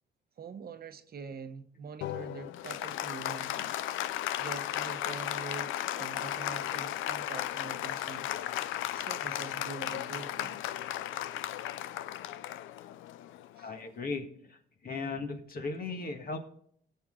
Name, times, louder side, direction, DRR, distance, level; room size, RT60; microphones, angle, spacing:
voice 1, 0.4-3.7 4.4-8.3 8.9-10.6 13.6-13.7, right 5 dB, 50° right, 1.0 m, -44 dB
Applause, 2.0-13.9, left 13 dB, 90° left, 0.5 m, -35 dB
voice 2, 13.6-14.6 14.8-16.4, left 4 dB, 45° left, 1.7 m, -37 dB
18.5 x 6.9 x 3.7 m
cardioid pair, 90°, 20 cm